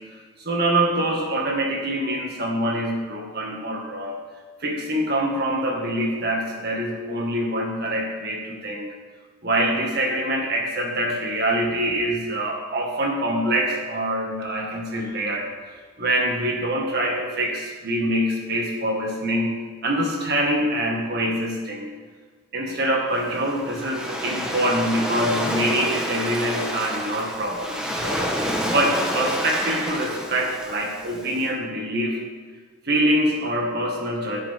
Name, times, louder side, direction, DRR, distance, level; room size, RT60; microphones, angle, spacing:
voice 1, 0.4-4.2 4.6-8.8 9.4-15.5 16.0-19.6 19.8-21.9 22.5-32.2 32.8-34.4, right 1 dB, 50° right, 0 dB, 1.9 m, -25 dB
Waves surf, 23.1-31.4, equal, 5° right, 1.2 m, -29 dB
15.0 x 7.6 x 3.7 m, 1.5 s
head